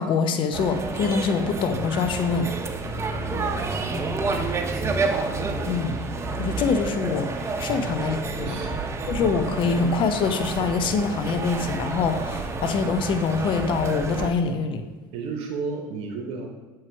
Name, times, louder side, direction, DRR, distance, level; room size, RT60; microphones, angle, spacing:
voice 1, 0.0-2.5 5.7-6.0 6.4-7.3 7.6-8.6 9.1-14.8, left 5 dB, 50° left, 7 dB, 0.7 m, -24 dB
sound 1, 0.5-14.3, right 3 dB, 25° right, 0.7 m, -29 dB
voice 2, 3.3-5.0 7.7-7.9 8.4-8.9 15.1-16.5, right 4 dB, 65° right, 3 dB, 0.8 m, -34 dB
7.3 x 3.2 x 4.6 m, 1.3 s
hypercardioid pair, 75°, 11 cm